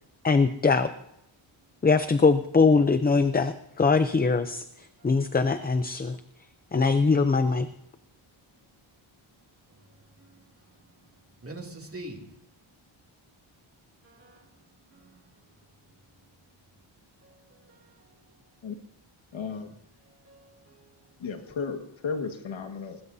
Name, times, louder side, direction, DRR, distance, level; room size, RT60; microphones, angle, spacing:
voice 1, 0.2-0.9 1.8-4.6 5.0-6.2 6.7-7.7, left 4 dB, 20° left, 0.5 m, -22 dB
voice 2, 9.7-12.2 14.0-14.5 14.9-15.2 17.2-18.1 20.1-21.1, right 1 dB, 25° right, 2.6 m, -47 dB
voice 3, 19.3-19.7 21.2-23.0, left 5 dB, 65° left, 1.8 m, -34 dB
21.0 x 21.0 x 2.7 m
wide cardioid pair, 155°, 50 cm